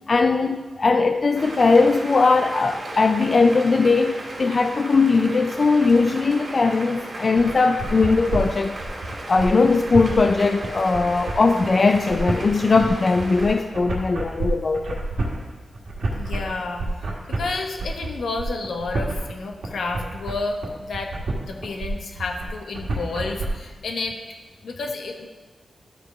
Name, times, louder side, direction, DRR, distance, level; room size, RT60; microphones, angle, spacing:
voice 1, 0.1-8.8 9.3-15.0, left 4 dB, 40° left, 0.3 m, -19 dB
sound 1, 1.3-13.6, right 1 dB, 40° right, 2.7 m, -36 dB
sound 2, 7.4-23.5, right 2 dB, 75° right, 1.8 m, -29 dB
voice 2, 16.1-21.1 21.4-24.2 24.6-25.3, left 3 dB, 85° left, 1.1 m, -30 dB
13.0 x 5.0 x 4.6 m
wide cardioid pair, 160°, 0 cm